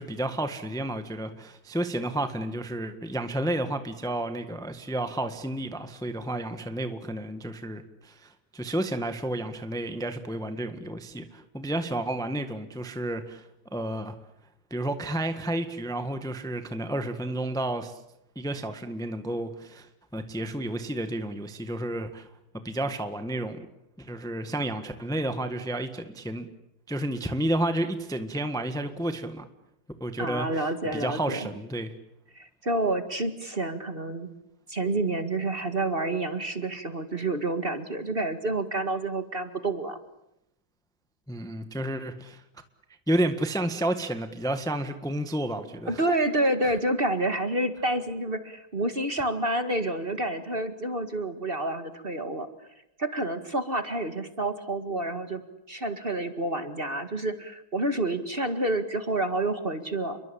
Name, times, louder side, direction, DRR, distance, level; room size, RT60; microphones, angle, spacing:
voice 1, 0.0-14.1 14.7-18.0 18.3-19.9 20.1-22.3 22.6-23.7 24.0-26.5 26.9-29.5 30.0-30.7 30.9-31.9 41.3-42.4 43.1-46.0 46.6-46.7, right 1 dB, ahead, 8 dB, 1.4 m, -31 dB
voice 2, 30.2-31.5 32.3-34.3 34.7-40.0 45.9-52.5 53.0-55.4 55.7-60.2, right 2 dB, 30° right, 9 dB, 2.0 m, -29 dB
29.5 x 23.0 x 8.7 m, 0.83 s
omnidirectional pair, 2.1 m